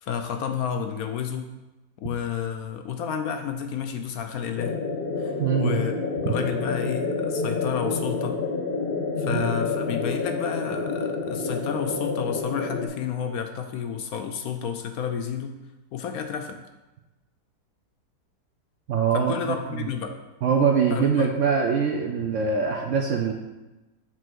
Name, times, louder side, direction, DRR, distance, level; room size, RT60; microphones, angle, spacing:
voice 1, 0.0-1.5 2.0-4.8 5.2-5.9 6.2-8.4 9.2-15.6 15.9-16.6 19.1-20.1 20.9-21.3, left 7 dB, 70° left, 6 dB, 0.9 m, -31 dB
sound 1, 4.6-12.9, left 4 dB, 45° left, 0.7 m, -28 dB
voice 2, 5.4-5.8 6.2-6.3 9.3-9.5 18.9-19.3 19.7-19.9 20.4-23.3, right 6 dB, 65° right, 2 dB, 0.8 m, -23 dB
7.5 x 3.3 x 6.1 m, 1.1 s
omnidirectional pair, 1.8 m